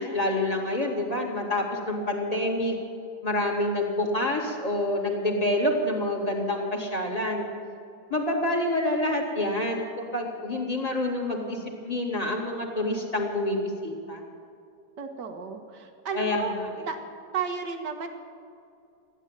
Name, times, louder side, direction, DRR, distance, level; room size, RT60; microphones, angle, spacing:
voice 1, 0.0-2.8 3.2-7.5 8.1-14.2 16.1-16.7, left 1 dB, 20° left, 0 dB, 2.5 m, -27 dB
voice 2, 15.0-16.6 16.9-17.0 17.3-18.1, right 6 dB, 80° right, 5 dB, 2.0 m, -32 dB
15.0 x 11.0 x 8.9 m, 2.5 s
omnidirectional pair, 1.8 m